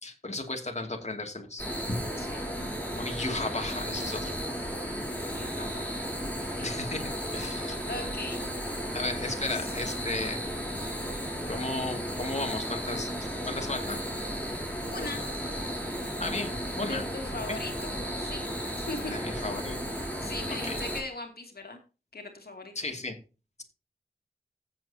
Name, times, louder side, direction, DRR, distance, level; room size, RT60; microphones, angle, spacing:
voice 1, 0.0-2.0 2.9-4.3 6.6-7.0 7.3-7.8 8.9-10.4 11.5-13.1 13.5-14.0 16.2-17.0 17.5-17.6 19.1-19.8 20.6-20.8 22.8-23.2, left 2 dB, 45° left, 3 dB, 2.5 m, -34 dB
sound 1, 1.6-21.0, equal, 10° left, 6.7 m, -34 dB
voice 2, 2.2-2.5 5.2-6.1 6.6-6.7 7.8-8.4 9.5-9.6 14.9-15.2 16.9-17.9 18.2-18.5 18.7-19.2 20.2-21.8 22.1-22.7, left 2 dB, 75° left, 4 dB, 2.5 m, -39 dB
15.0 x 7.7 x 2.8 m, 0.32 s
cardioid pair, 45°, 16 cm